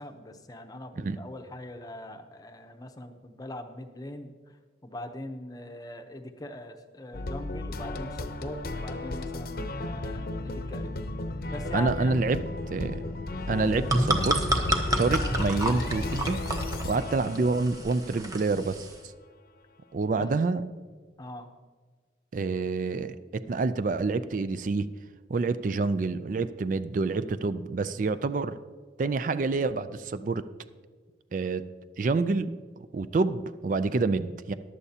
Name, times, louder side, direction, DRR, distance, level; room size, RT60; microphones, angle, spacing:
voice 1, 0.0-4.3 4.8-11.0 11.4-12.2 20.2-20.3 21.2-21.5, left 1 dB, 20° left, 6 dB, 0.7 m, -41 dB
sound 1, 7.1-18.2, left 2 dB, 55° left, 0.7 m, -34 dB
voice 2, 11.7-12.4 12.7-13.0 13.5-14.4 15.0-16.4 16.8-18.9 19.9-20.6 22.3-24.9 25.3-28.5 29.0-30.4 31.3-31.6 32.0-32.5 32.9-34.5, right 3 dB, 45° right, 13 dB, 0.4 m, -27 dB
sound 2, 13.5-19.0, right 1 dB, 20° right, 1.0 m, -30 dB
15.0 x 11.0 x 2.8 m, 1.5 s
head